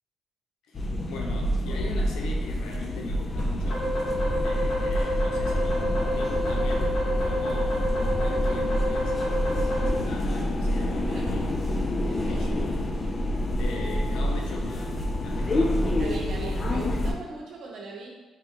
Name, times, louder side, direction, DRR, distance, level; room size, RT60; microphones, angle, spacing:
voice 1, 0.6-3.9 4.4-12.7 13.6-15.8, left 3 dB, 90° left, 1 dB, 0.5 m, -40 dB
sound 1, 0.7-17.1, left 1 dB, 35° left, 0.4 m, -27 dB
sound 2, 3.7-9.9, equal, 50° left, 1.0 m, -29 dB
voice 2, 12.1-12.5 16.0-18.1, right 3 dB, 70° right, -1 dB, 0.8 m, -39 dB
3.8 x 2.1 x 3.6 m, 1.3 s
cardioid pair, 90°, 0 cm